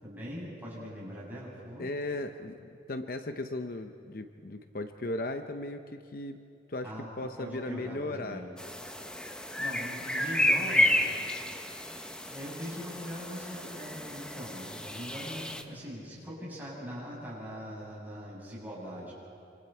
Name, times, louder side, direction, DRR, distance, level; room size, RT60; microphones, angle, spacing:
voice 1, 0.0-1.9 6.8-7.1 7.4-8.5 9.6-11.0 11.2-11.3 12.2-19.1, equal, 10° right, -7 dB, 7.5 m, -41 dB
voice 2, 1.8-6.4 6.7-8.5, left 2 dB, 50° left, 8 dB, 0.8 m, -37 dB
sound 1, 8.6-15.6, left 1 dB, 5° left, 0.9 m, -31 dB
27.0 x 27.0 x 4.5 m, 2.6 s
head